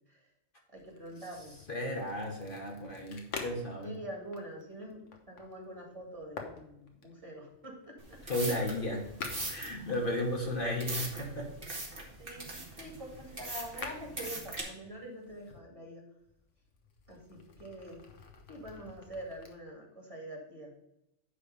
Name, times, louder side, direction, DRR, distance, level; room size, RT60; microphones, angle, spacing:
voice 1, 0.7-1.6 3.8-8.2 12.2-16.0 17.1-18.0 18.5-20.7, right 1 dB, 25° right, -1 dB, 2.3 m, -45 dB
sound 1, 0.8-10.7 11.4-15.6 16.2-19.6, left 4 dB, 85° left, 1.5 m, -49 dB
voice 2, 1.7-3.9 8.3-9.1 9.5-11.5, left 1 dB, 45° left, -1 dB, 1.5 m, -34 dB
sound 2, 8.0-14.6, right 2 dB, 50° right, 2.0 m, -41 dB
10.0 x 3.4 x 6.7 m, 0.82 s
omnidirectional pair, 1.2 m